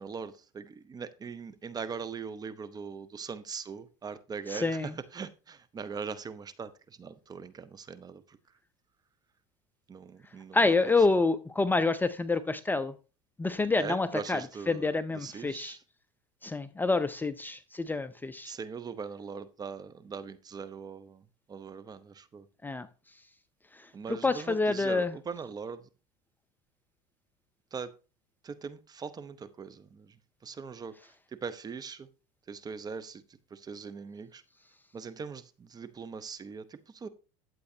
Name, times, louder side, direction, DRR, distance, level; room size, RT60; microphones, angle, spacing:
voice 1, 0.0-8.4 9.9-11.0 13.8-15.8 18.4-22.5 23.9-25.8 27.7-27.9 28.4-31.0 31.3-32.1 32.5-33.2 33.5-34.4 34.9-37.1, right 5 dB, 25° right, 0.8 m, -41 dB
voice 2, 4.5-4.9 10.5-12.9 13.4-14.4 14.7-15.8 16.4-18.5 22.6-22.9 24.1-25.1, left 3 dB, 10° left, 0.5 m, -27 dB
11.5 x 7.6 x 2.8 m
supercardioid pair, 100°, 16 cm